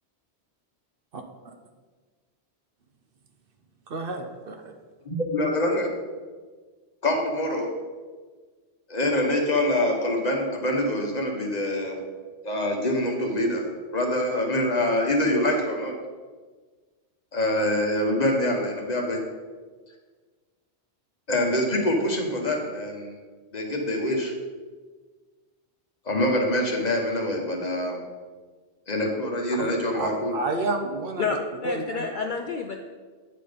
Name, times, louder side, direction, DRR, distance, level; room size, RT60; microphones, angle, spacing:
voice 1, 3.9-4.7 29.6-31.3 31.6-32.1, right 2 dB, 60° right, 5 dB, 0.8 m, -30 dB
voice 2, 5.0-5.9 7.0-7.7 8.9-12.0 12.4-13.6 13.9-15.9 17.3-19.2 21.3-23.1 23.5-24.3 26.1-28.0 28.9-30.3, left 1 dB, 40° left, 1 dB, 1.1 m, -25 dB
voice 3, 31.2-32.8, left 5 dB, 55° left, 3 dB, 0.6 m, -29 dB
8.7 x 4.1 x 5.0 m, 1.4 s
omnidirectional pair, 1.2 m